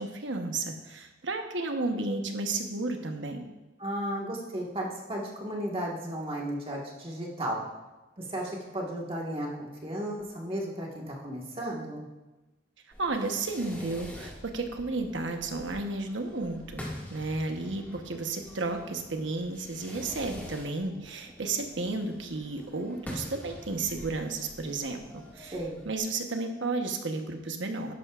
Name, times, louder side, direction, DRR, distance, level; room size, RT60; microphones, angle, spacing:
voice 1, 0.0-3.4 13.0-25.6 25.8-27.9, right 3 dB, 85° right, 4 dB, 1.1 m, -33 dB
voice 2, 3.8-7.6 8.2-12.1 25.5-25.8, right 1 dB, 30° right, -2 dB, 1.7 m, -34 dB
Fireworks, 12.9-26.0, left 1 dB, 10° left, 2.1 m, -46 dB
12.5 x 10.5 x 2.5 m, 1.1 s
head